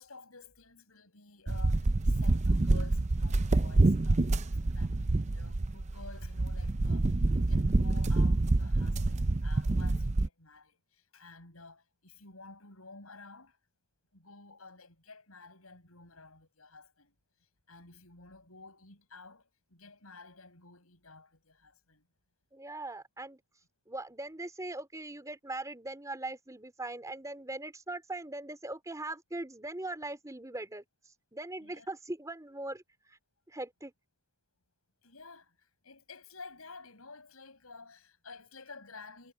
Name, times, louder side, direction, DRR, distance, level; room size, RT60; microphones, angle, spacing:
voice 1, 0.0-5.0 5.3-13.6 14.1-17.1 17.7-22.0 31.6-31.9 35.0-39.3, left 3 dB, 85° left, 6.9 m, -52 dB
sound 1, 1.5-10.3, right 2 dB, 35° right, 0.6 m, -27 dB
voice 2, 22.5-23.4 23.9-30.8 31.3-32.8 33.5-33.9, right 2 dB, 15° right, 3.6 m, -40 dB
head